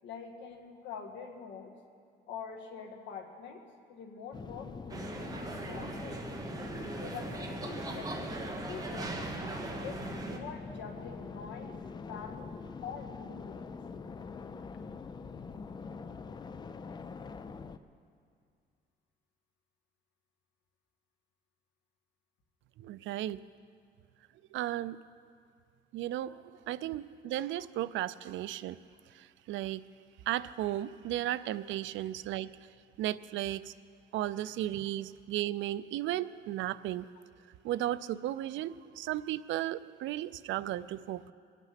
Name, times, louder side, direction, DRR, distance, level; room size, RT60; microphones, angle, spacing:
voice 1, 0.0-1.7 2.3-3.6 3.9-6.2 7.0-9.2 9.8-11.8 12.1-13.7, left 6 dB, 75° left, 3 dB, 1.7 m, -45 dB
sound 1, 4.3-17.8, left 5 dB, 25° left, 0.4 m, -44 dB
sound 2, 4.9-10.4, right 3 dB, 20° right, 1.2 m, -39 dB
voice 2, 22.8-23.4 24.5-25.0 25.9-28.8 29.1-29.8 30.3-32.5 33.0-33.7 34.1-37.1 37.6-41.3, right 13 dB, 85° right, 16 dB, 0.5 m, -35 dB
22.5 x 9.1 x 5.9 m, 2.3 s
cardioid pair, 165°, 19 cm